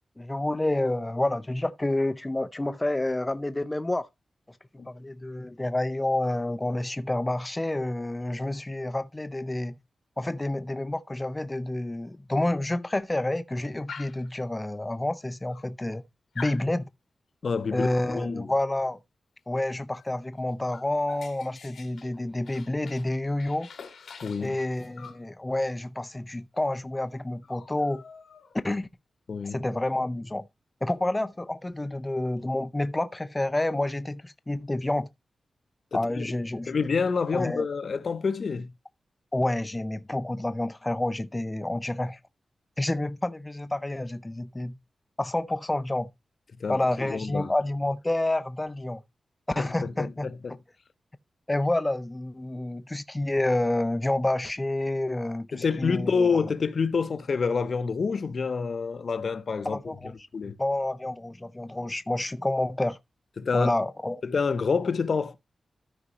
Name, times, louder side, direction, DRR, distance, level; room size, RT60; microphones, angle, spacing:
voice 1, 0.2-4.1 4.9-9.8 10.2-16.0 16.4-16.9 17.7-19.0 19.5-23.7 24.4-28.0 28.6-28.9 29.4-30.5 30.8-35.1 35.9-36.8 37.3-37.7 39.3-42.2 42.8-44.8 45.2-46.1 46.7-49.0 49.6-50.3 51.5-56.4 59.6-60.1 60.6-63.0 63.5-64.2, left 1 dB, 15° left, 0.5 m, -29 dB
Dog, 13.9-14.3 15.1-15.2 15.5-16.0 16.3-16.7 17.8-18.1 19.9-20.1 20.4-23.1 23.4-25.2 26.5-26.6 26.9-27.1 27.4-28.7, left 6 dB, 90° left, 1.5 m, -45 dB
voice 2, 17.4-18.5 24.2-24.6 29.3-29.6 35.9-36.2 36.7-38.7 46.6-47.5 49.6-50.6 55.5-59.9 60.3-60.5 63.4-63.7 64.2-65.4, left 5 dB, 55° left, 0.7 m, -28 dB
13.5 x 5.1 x 2.9 m
wide cardioid pair, 145°, 0 cm